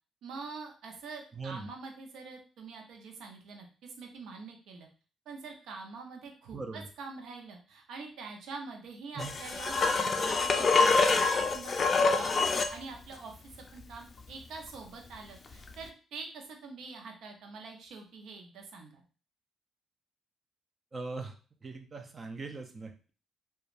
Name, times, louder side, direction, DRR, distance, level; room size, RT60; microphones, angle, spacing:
voice 1, 0.2-4.9 5.3-19.0, right 4 dB, 80° right, 2 dB, 0.6 m, -45 dB
voice 2, 1.4-1.7 6.5-6.9 9.1-9.3 20.9-21.3 21.6-23.1, right 3 dB, 35° right, 6 dB, 0.5 m, -40 dB
sound 1, 9.2-12.8 15.7-15.8, left 4 dB, 40° left, 0.3 m, -26 dB
3.0 x 2.3 x 2.5 m, 0.37 s
cardioid pair, 90°, 0 cm